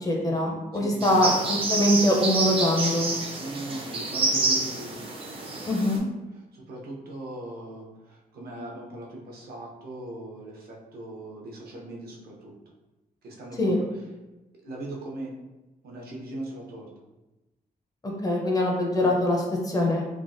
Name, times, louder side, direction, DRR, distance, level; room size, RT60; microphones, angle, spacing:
voice 1, 0.0-3.1 5.7-6.0 13.6-13.8 18.0-20.0, left 1 dB, 25° left, -1 dB, 0.4 m, -23 dB
voice 2, 0.7-1.2 3.4-4.9 6.5-12.5 13.2-13.9 14.6-15.4 15.8-16.9, right 1 dB, 75° right, -2 dB, 0.7 m, -39 dB
sound 1, 1.0-6.0, right 2 dB, 35° right, 0.4 m, -28 dB
3.3 x 2.1 x 2.5 m, 1.0 s
wide cardioid pair, 160°, 16 cm